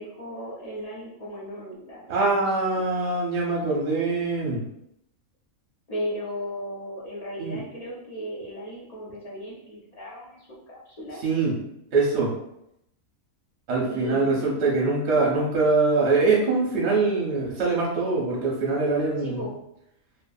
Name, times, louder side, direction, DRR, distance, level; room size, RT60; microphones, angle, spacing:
voice 1, 0.0-2.5 2.8-2.9 5.9-11.2 13.8-14.6 19.2-19.5, equal, 75° left, -6 dB, 0.3 m, -36 dB
voice 2, 2.1-4.6 7.4-7.6 11.2-11.5 11.9-12.3 13.7-19.5, right 3 dB, 55° right, -4 dB, 0.9 m, -23 dB
2.8 x 2.5 x 2.3 m, 0.80 s
omnidirectional pair, 1.5 m